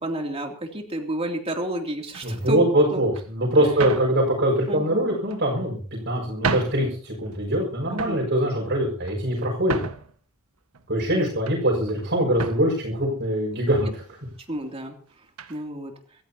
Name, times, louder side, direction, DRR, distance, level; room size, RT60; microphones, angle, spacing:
voice 1, 0.0-3.0 3.6-3.8 4.7-5.1 7.9-8.3 11.1-11.3 14.5-15.0 15.5-15.9, right 1 dB, 25° right, 2 dB, 3.1 m, -31 dB
sound 1, 2.1-2.4 3.2-3.3 3.8-4.2 5.1-5.7 6.2-6.3 6.4-6.9 7.3-7.6 7.9-8.3 8.9-10.2 10.7-11.6 11.9-12.1 12.3-12.7 13.5-13.6 13.9-14.1 15.4-15.6, right 4 dB, 80° right, 1.6 m, -32 dB
voice 2, 2.2-5.8 6.0-9.8 10.9-14.0, right 1 dB, 50° right, -2 dB, 6.5 m, -23 dB
27.5 x 14.5 x 2.9 m, 0.41 s
head